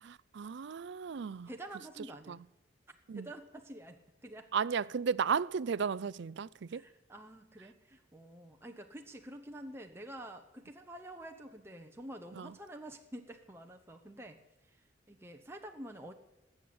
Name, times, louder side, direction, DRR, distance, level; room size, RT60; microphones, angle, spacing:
voice 1, 0.0-1.5 2.3-2.4 3.1-3.3 4.5-6.9 12.4-12.5, right 6 dB, 65° right, 0.4 m, -34 dB
voice 2, 1.5-2.4 3.1-4.5 6.7-16.1, right 1 dB, 15° right, 0.9 m, -48 dB
19.5 x 8.0 x 8.7 m
head